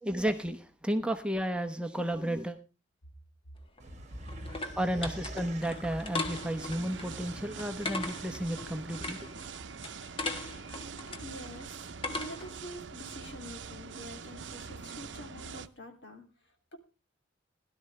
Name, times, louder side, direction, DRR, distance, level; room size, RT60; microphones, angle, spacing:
voice 1, 0.0-2.6 4.8-9.3, right 1 dB, 5° right, 7 dB, 1.0 m, -32 dB
sound 1, 3.6-12.6, left 3 dB, 30° left, 1.5 m, -40 dB
sound 2, 3.8-8.9, right 1 dB, 40° right, 1.4 m, -45 dB
sound 3, 6.3-15.7, right 5 dB, 85° right, 0.7 m, -44 dB
voice 2, 11.0-16.8, left 1 dB, 75° left, 4 dB, 2.9 m, -47 dB
17.0 x 12.0 x 3.3 m, 0.29 s
head